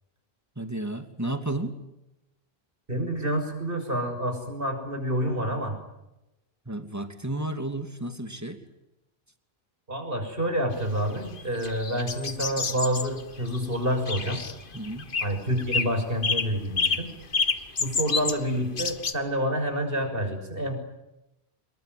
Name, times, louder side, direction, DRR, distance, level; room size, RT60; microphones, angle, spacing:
voice 1, 0.6-1.7 6.7-8.6 14.7-15.1, right 1 dB, 15° right, 7 dB, 2.7 m, -32 dB
voice 2, 2.9-5.8 9.9-14.4 15.2-17.1 17.8-20.8, equal, 60° right, 5 dB, 6.8 m, -28 dB
sound 1, 10.8-19.1, left 4 dB, 55° left, 1.6 m, -29 dB
27.5 x 22.5 x 9.5 m, 0.94 s
omnidirectional pair, 1.1 m